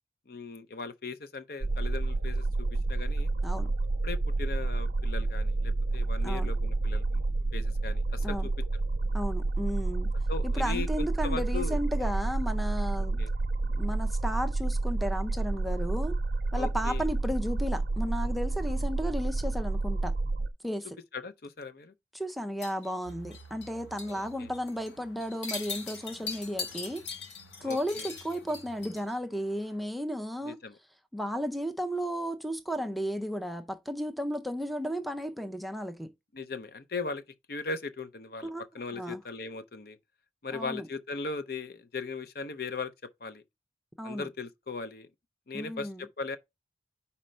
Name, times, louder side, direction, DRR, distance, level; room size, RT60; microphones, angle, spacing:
voice 1, 0.3-2.5 2.9-3.3 4.0-7.2 7.5-8.5 10.3-12.1 13.2-13.3 16.5-17.0 21.1-21.9 24.1-24.5 27.6-28.1 30.4-30.8 36.3-37.2 37.5-40.0 40.4-42.9 43.2-43.4 44.0-45.1 45.5-46.4, left 4 dB, 55° left, 0.6 m, -38 dB
sound 1, 1.6-20.5, right 2 dB, 60° right, 0.4 m, -29 dB
voice 2, 9.1-10.1 10.4-13.2 13.8-16.2 16.5-20.1 20.6-21.0 22.1-27.0 27.6-30.6 31.1-36.1 38.4-38.7 39.0-39.2 40.5-40.9 44.0-44.3 45.5-46.0, equal, ahead, 0.4 m, -34 dB
sound 2, 22.6-23.7 24.0-24.2 24.5-24.9 25.2-29.1, left 5 dB, 70° left, 1.7 m, -40 dB
sound 3, 23.0-29.8, right 2 dB, 85° left, 0.9 m, -54 dB
5.2 x 4.3 x 4.3 m
head